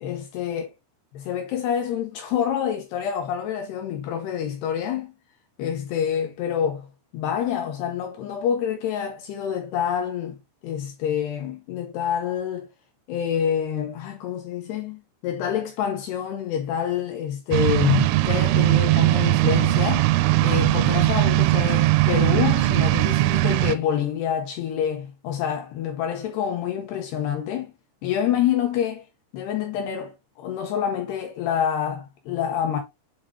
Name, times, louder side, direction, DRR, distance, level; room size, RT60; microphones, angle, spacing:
voice 1, 0.0-0.7 1.1-5.1 5.6-6.9 7.1-10.4 10.6-12.7 13.1-20.1 20.4-27.7 28.0-29.1 29.3-32.8, left 9 dB, 90° left, 2.2 m, -27 dB
sound 1, 17.5-23.8, right 17 dB, 85° right, 2.7 m, -19 dB
7.8 x 3.7 x 3.5 m
omnidirectional pair, 5.9 m